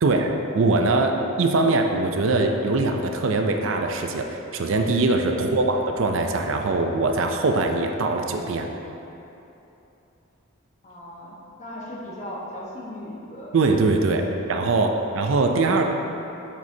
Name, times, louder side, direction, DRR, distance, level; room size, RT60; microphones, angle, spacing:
voice 1, 0.0-8.7 13.5-14.2 14.5-15.8, right 3 dB, 65° right, 4 dB, 0.5 m, -22 dB
voice 2, 10.8-13.6 14.0-14.4 15.0-15.2, left 1 dB, 35° left, -5 dB, 1.1 m, -38 dB
7.3 x 6.2 x 2.7 m, 2.9 s
head